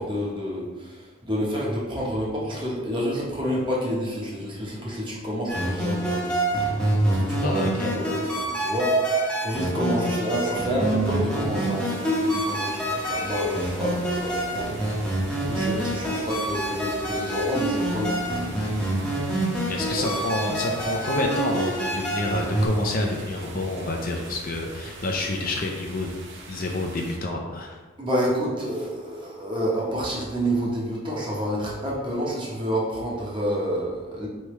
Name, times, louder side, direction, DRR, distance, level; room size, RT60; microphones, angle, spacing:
voice 1, 0.0-6.3 7.1-14.7 15.5-18.4 20.0-20.1 28.0-34.3, equal, 20° right, -4 dB, 0.9 m, -29 dB
sound 1, 5.5-22.7, right 1 dB, 5° left, 0.8 m, -26 dB
voice 2, 7.4-7.9 19.7-26.1 26.5-27.8, left 2 dB, 40° left, 1 dB, 0.5 m, -28 dB
sound 2, 10.6-27.2, right 2 dB, 55° right, 0.6 m, -43 dB
4.7 x 3.3 x 3.1 m, 1.2 s
head